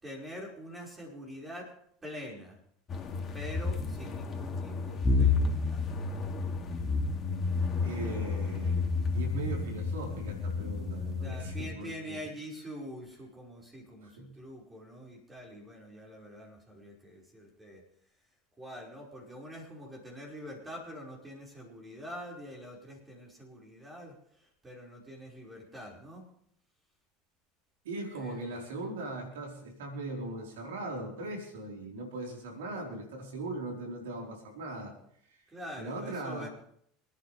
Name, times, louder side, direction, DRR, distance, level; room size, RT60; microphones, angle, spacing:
voice 1, 0.0-1.7 2.0-2.6 3.3-5.8 11.2-17.8 18.6-26.3 28.2-28.6 35.5-36.5, equal, 20° right, -2 dB, 5.4 m, -45 dB
sound 1, 2.9-11.7, left 4 dB, 35° left, 2.7 m, -31 dB
voice 2, 7.8-8.8 9.1-12.2 14.0-14.3 27.8-34.9 35.8-36.5, right 2 dB, 80° right, 1 dB, 4.4 m, -39 dB
27.5 x 10.0 x 3.5 m, 0.67 s
hypercardioid pair, 80°, 0 cm